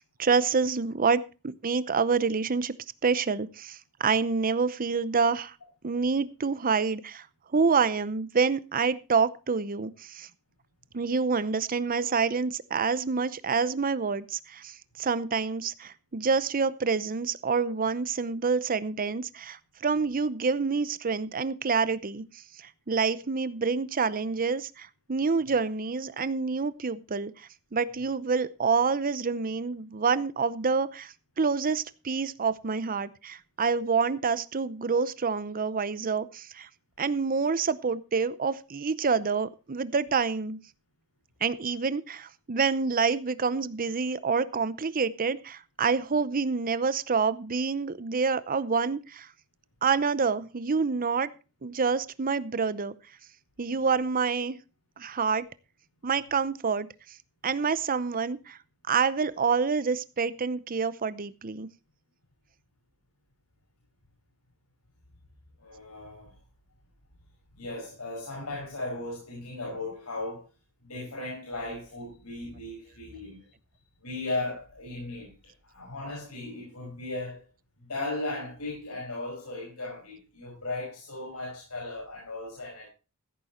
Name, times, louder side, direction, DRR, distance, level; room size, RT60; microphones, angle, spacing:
voice 1, 0.0-2.7 3.0-5.5 5.8-7.3 7.5-10.3 10.9-22.2 22.6-36.7 37.0-40.6 41.4-49.3 49.8-51.3 51.6-52.9 53.6-54.6 55.0-55.4 56.0-56.9 57.4-58.6 58.9-61.7, right 5 dB, 40° right, 0.7 m, -27 dB
voice 2, 65.6-66.3 67.6-70.5 70.8-73.4 74.0-75.3 75.6-77.5 77.8-82.9, left 2 dB, 85° left, 5.6 m, -36 dB
15.0 x 8.8 x 4.3 m
head